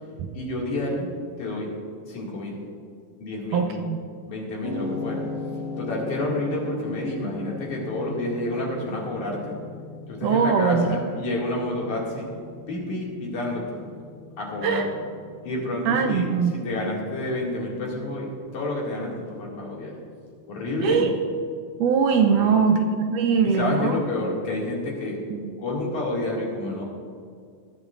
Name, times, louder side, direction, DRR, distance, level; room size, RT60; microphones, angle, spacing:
voice 1, 0.3-1.1 1.4-1.7 2.1-2.6 3.2-3.7 4.3-5.2 5.8-9.5 10.1-12.3 12.7-13.8 14.4-14.9 15.4-16.3 16.6-20.0 20.5-21.1 22.4-22.6 23.4-25.2 25.6-26.8, left 2 dB, 60° left, -3 dB, 3.6 m, -29 dB
voice 2, 3.5-4.0 10.2-11.0 14.6-14.9 15.9-16.6 20.8-21.1 21.8-24.0 25.3-25.5, right 6 dB, 75° right, 4 dB, 2.0 m, -21 dB
sound 1, 4.6-22.9, left 3 dB, 35° right, 2.6 m, -39 dB
21.5 x 11.0 x 2.6 m, 2.2 s
omnidirectional pair, 4.0 m